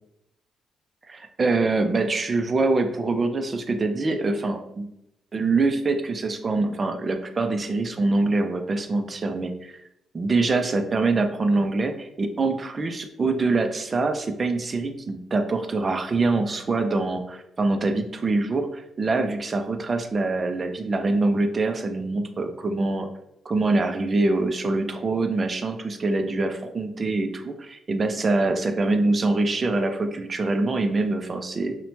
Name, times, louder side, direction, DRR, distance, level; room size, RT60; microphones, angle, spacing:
voice 1, 1.1-4.9 5.3-9.7 10.1-23.1 23.5-31.8, right 3 dB, 35° right, 7 dB, 0.4 m, -24 dB
2.9 x 2.1 x 2.7 m, 0.82 s
cardioid pair, 90°, 0 cm